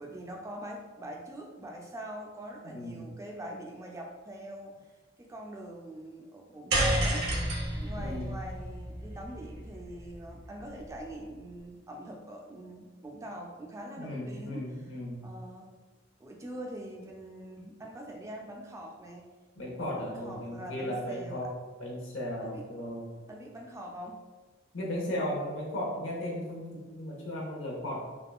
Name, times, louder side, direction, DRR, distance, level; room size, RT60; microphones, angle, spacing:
voice 1, 0.0-4.7 5.2-7.4 7.8-14.9 15.2-15.8 16.2-19.3 20.0-21.4 22.4-22.7 23.3-24.2, right 1 dB, 15° right, 0 dB, 0.3 m, -43 dB
voice 2, 2.7-3.0 7.9-8.3 14.0-15.2 19.6-21.5 21.8-23.0 24.7-28.1, left 1 dB, 90° left, -2 dB, 0.8 m, -36 dB
sound 1, 6.7-11.1, right 1 dB, 55° right, 0.6 m, -31 dB
3.6 x 2.3 x 2.3 m, 1.3 s
head